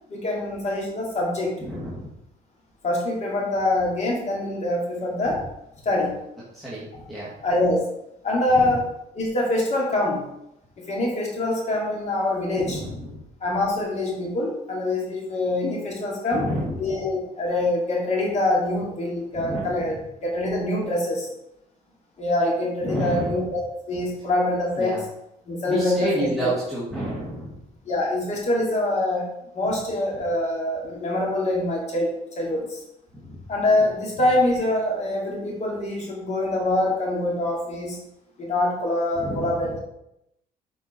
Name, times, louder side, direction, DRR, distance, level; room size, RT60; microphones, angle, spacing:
voice 1, 0.1-1.5 2.8-5.4 5.8-6.2 7.4-7.9 8.2-8.8 9.2-10.2 10.8-12.8 13.4-16.4 16.8-20.0 20.2-21.3 22.2-23.6 23.9-25.0 25.5-26.5 27.9-29.3 29.5-32.1 32.4-32.8 33.5-38.0 38.4-39.8, left 1 dB, 40° left, -2 dB, 2.7 m, -24 dB
voice 2, 1.6-2.1 5.3-5.4 6.5-7.3 8.5-8.7 12.6-13.2 16.3-17.0 19.3-19.9 22.8-23.4 24.8-25.0 25.7-27.6 33.2-33.4 33.8-33.9 39.1-39.7, equal, ahead, -8 dB, 2.1 m, -30 dB
7.3 x 4.7 x 4.5 m, 0.82 s
cardioid pair, 110°, 17 cm